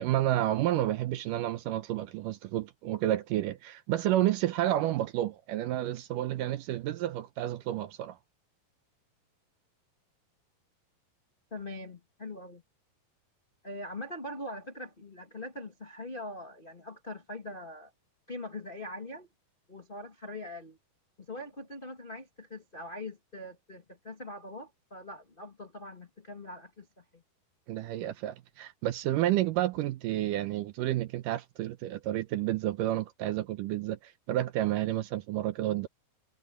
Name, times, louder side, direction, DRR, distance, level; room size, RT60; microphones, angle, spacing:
voice 1, 0.0-8.2 27.7-35.9, right 13 dB, 75° right, 2.1 m, -30 dB
voice 2, 11.5-12.6 13.6-17.9 18.3-19.3 19.7-20.8 21.2-27.2, left 1 dB, 85° left, 0.4 m, -42 dB
omnidirectional pair, 4.4 m